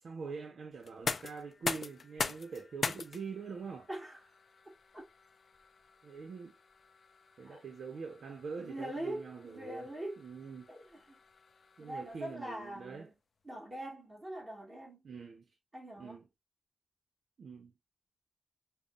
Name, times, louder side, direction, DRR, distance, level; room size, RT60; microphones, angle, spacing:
voice 1, 0.0-3.9 6.0-6.6 7.4-9.9 10.2-10.7 11.8-13.1 15.0-15.5 16.0-16.3 17.4-17.7, right 5 dB, 85° right, 0.7 m, -44 dB
sound 1, 0.8-12.6, left 4 dB, 60° left, 0.4 m, -43 dB
voice 2, 3.9-4.2 4.9-5.1 7.5-7.6 8.6-10.2 10.7-11.2 11.8-13.1 13.5-15.0 15.7-16.2, right 1 dB, 25° right, 1.8 m, -43 dB
5.6 x 2.2 x 2.4 m
wide cardioid pair, 155°, 0 cm